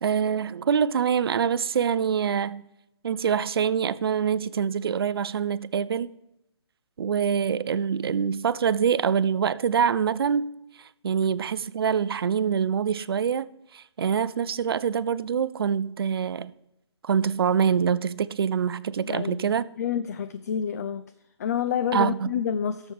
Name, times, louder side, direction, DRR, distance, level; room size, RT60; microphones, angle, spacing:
voice 1, 0.0-2.7 3.0-6.1 7.0-10.5 11.0-13.5 13.7-16.5 17.0-19.6 21.9-22.3, right 7 dB, 55° right, 0.5 m, -25 dB
voice 2, 19.0-19.5 19.8-21.0 21.4-22.9, left 8 dB, 35° left, 0.4 m, -28 dB
17.0 x 7.2 x 3.5 m
figure-of-eight pair, 150°, 15 cm